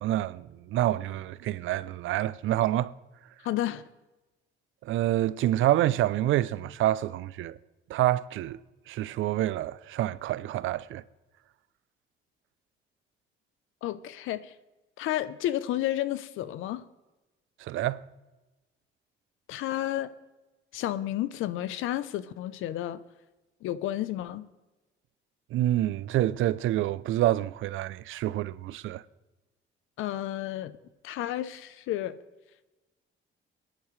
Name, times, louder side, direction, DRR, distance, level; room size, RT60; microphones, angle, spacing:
voice 1, 0.0-2.9 4.8-7.6 7.9-8.6 8.9-11.0 17.6-18.0 25.5-29.0, right 14 dB, 80° right, 0.5 m, -27 dB
voice 2, 3.4-3.8 13.8-14.5 15.0-16.8 19.5-20.1 20.7-23.0 23.6-24.5 30.0-30.7 31.0-32.2, left 13 dB, 90° left, 0.6 m, -31 dB
20.5 x 10.5 x 3.2 m
cardioid pair, 90°, 20 cm